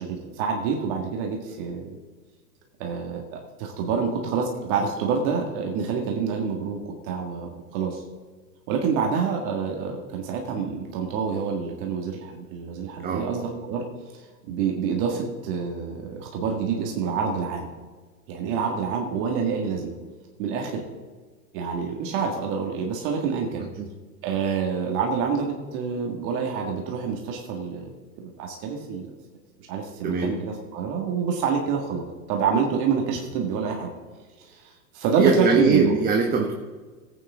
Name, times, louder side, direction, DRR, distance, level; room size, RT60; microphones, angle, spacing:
voice 1, 0.0-2.0 2.8-8.0 8.7-13.8 14.1-17.7 18.3-20.0 20.4-20.8 21.5-23.6 24.2-27.9 28.2-29.1 29.7-33.9 34.4-35.9, right 6 dB, 45° right, 1 dB, 1.9 m, -27 dB
voice 2, 35.2-36.5, right 4 dB, 20° right, 2 dB, 1.1 m, -21 dB
16.0 x 8.8 x 3.6 m, 1.4 s
hypercardioid pair, 115°, 46 cm